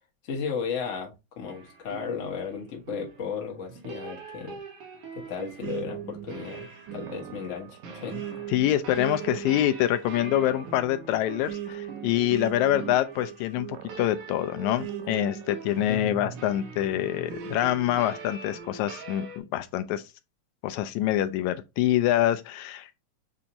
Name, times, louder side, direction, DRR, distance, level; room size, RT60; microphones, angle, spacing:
voice 1, 0.2-4.6 5.3-8.2 15.9-16.3, left 6 dB, 55° left, 0.8 m, -35 dB
sound 1, 1.5-19.4, right 5 dB, 60° right, 1.7 m, -43 dB
sound 2, 5.6-16.7 17.3-18.8, right 9 dB, 90° right, 2.1 m, -40 dB
voice 2, 8.5-20.0 20.6-23.0, left 13 dB, 80° left, 1.9 m, -26 dB
7.0 x 2.6 x 2.8 m
omnidirectional pair, 3.4 m